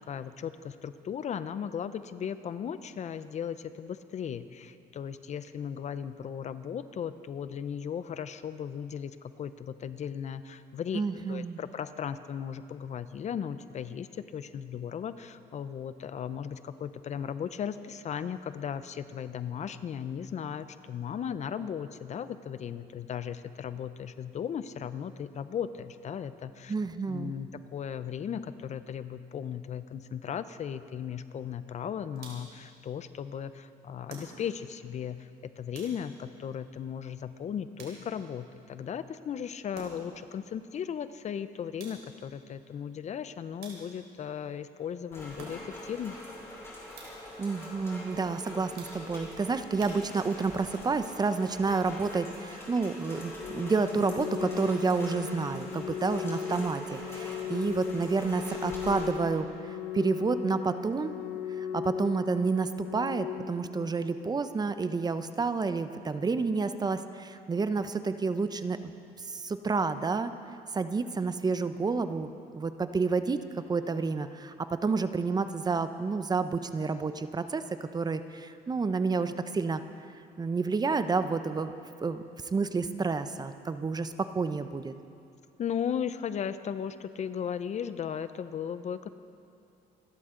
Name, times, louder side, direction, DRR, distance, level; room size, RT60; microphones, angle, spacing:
voice 1, 0.0-11.0 11.3-26.7 27.1-46.2 85.6-89.1, left 8 dB, 45° left, 13 dB, 0.6 m, -36 dB
voice 2, 10.9-11.6 26.7-27.4 47.4-61.1 61.6-68.9 69.2-70.3 70.7-72.3 72.5-77.6 77.9-79.8 80.4-81.7 82.0-82.2 82.5-84.9, right 4 dB, 25° right, 11 dB, 0.7 m, -30 dB
sound 1, 32.1-32.7 34.1-34.7 35.7-36.3 37.8-38.4 39.7-40.2 41.8-42.3 43.6-44.2 45.4-45.9 46.9-47.4 48.8-49.3 49.8-50.5, right 3 dB, 75° right, 4.3 m, -49 dB
Rain, 45.1-59.1, left 1 dB, 15° left, 5.1 m, -44 dB
Organ, 53.4-64.4, left 6 dB, 65° left, 1.4 m, -37 dB
27.0 x 12.5 x 3.8 m, 2.5 s
cardioid pair, 110°, 17 cm